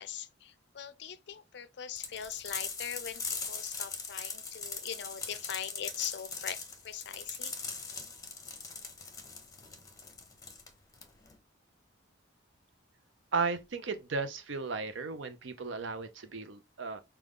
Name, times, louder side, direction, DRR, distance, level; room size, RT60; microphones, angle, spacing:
voice 1, 0.0-7.5, left 9 dB, 60° left, 0.4 m, -41 dB
sound 1, 2.0-11.4, left 5 dB, 20° left, 0.7 m, -40 dB
voice 2, 13.3-17.0, right 4 dB, 70° right, 0.6 m, -35 dB
5.1 x 2.3 x 3.5 m
head